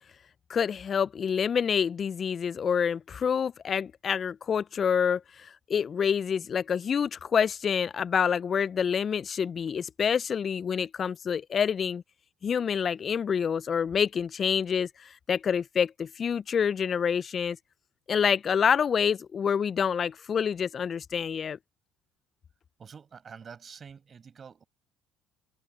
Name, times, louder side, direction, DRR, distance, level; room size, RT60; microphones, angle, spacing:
voice 1, 0.5-12.0 12.4-17.6 18.1-21.6, left 7 dB, 45° left, 0.6 m, -27 dB
voice 2, 22.8-24.6, right 6 dB, 40° right, 6.6 m, -47 dB
hypercardioid pair, 60°, 0 cm